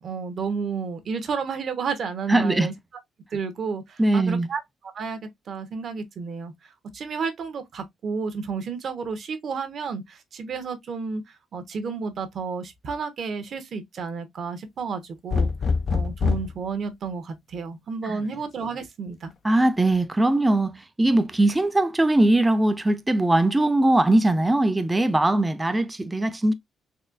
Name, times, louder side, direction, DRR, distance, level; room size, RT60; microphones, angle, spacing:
voice 1, 0.0-2.7 3.3-4.6 4.9-5.2 5.5-15.5 15.9-19.3, right 5 dB, 55° right, 1.1 m, -31 dB
voice 2, 2.3-2.7 4.0-4.5 18.0-18.2 19.4-26.5, right 2 dB, 15° right, 0.5 m, -21 dB
sound 1, 15.3-16.6 18.2-18.8, left 5 dB, 45° left, 0.4 m, -24 dB
4.2 x 3.0 x 2.4 m
cardioid pair, 90°, 0 cm